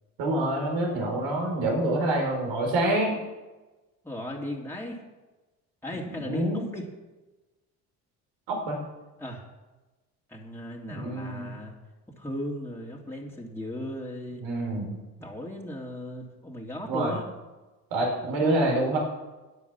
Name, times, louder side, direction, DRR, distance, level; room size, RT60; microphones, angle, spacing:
voice 1, 0.2-3.2 6.1-6.7 8.5-8.8 10.9-11.5 14.4-15.0 16.9-17.2 17.9-19.0, right 1 dB, 65° right, 0 dB, 4.7 m, -26 dB
voice 2, 4.0-5.0 5.8-6.8 9.2-9.4 10.3-11.7 12.2-14.4 15.2-17.3, left 1 dB, 5° left, -2 dB, 2.9 m, -36 dB
12.0 x 9.9 x 7.1 m, 1.1 s
hypercardioid pair, 55°, 46 cm